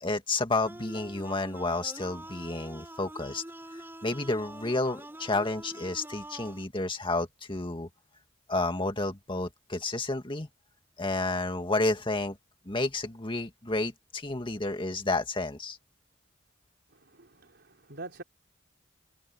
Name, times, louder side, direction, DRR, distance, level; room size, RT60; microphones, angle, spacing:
voice 1, 0.0-3.4 3.7-7.9 8.5-10.5 11.0-12.4 12.7-15.8, left 2 dB, 25° left, 2.0 m, -31 dB
sound 1, 0.6-6.6, right 1 dB, 10° right, 3.2 m, -45 dB
voice 2, 16.9-18.2, right 2 dB, 55° right, 4.4 m, -45 dB
head